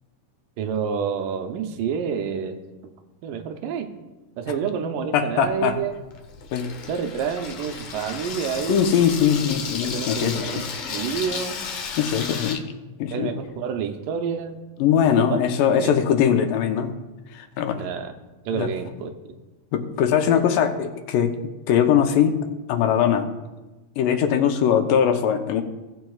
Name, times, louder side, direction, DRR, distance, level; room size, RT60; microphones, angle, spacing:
voice 1, 0.6-2.6 3.2-3.9 4.4-5.9 6.9-8.9 9.9-11.6 13.1-14.6 15.1-15.4 15.7-16.0 17.8-18.1 18.5-19.3, right 7 dB, 80° right, 6 dB, 2.3 m, -28 dB
voice 2, 5.1-5.8 6.5-6.7 8.7-10.6 12.0-12.6 13.0-13.3 14.8-16.9 17.3-17.8 18.5-18.7 19.7-23.3 24.0-25.6, left 8 dB, 85° left, 6 dB, 2.4 m, -21 dB
Water tap faucet / Sink (filling or washing), 5.4-12.6, left 5 dB, 70° left, 1.5 m, -33 dB
17.5 x 7.5 x 2.4 m, 1.1 s
omnidirectional pair, 3.8 m